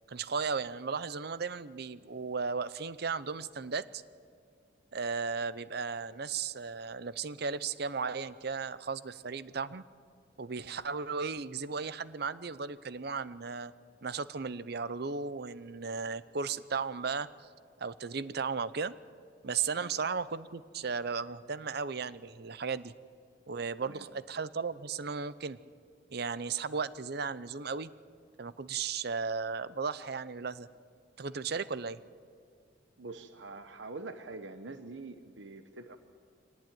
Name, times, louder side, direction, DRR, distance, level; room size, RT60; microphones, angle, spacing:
voice 1, 0.1-4.0 4.9-9.8 10.4-13.7 14.0-17.3 17.8-18.9 19.4-22.9 23.5-25.6 26.1-27.9 28.4-30.7 31.2-32.0, right 5 dB, 60° right, 16 dB, 0.7 m, -35 dB
voice 2, 33.0-36.0, right 3 dB, 85° right, 9 dB, 1.0 m, -45 dB
24.0 x 19.0 x 9.1 m, 2.2 s
head